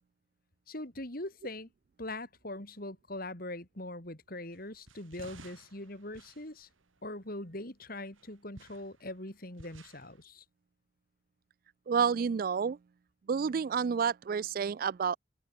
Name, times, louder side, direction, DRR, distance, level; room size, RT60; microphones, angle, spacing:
voice 1, 0.7-1.7 2.0-6.7 7.0-10.4, left 1 dB, 45° left, 4.0 m, -42 dB
sound 1, 4.5-7.6 8.1-10.2, right 2 dB, 90° right, 5.5 m, -55 dB
voice 2, 11.9-12.8 13.3-15.2, right 6 dB, 45° right, 0.3 m, -29 dB
open air
head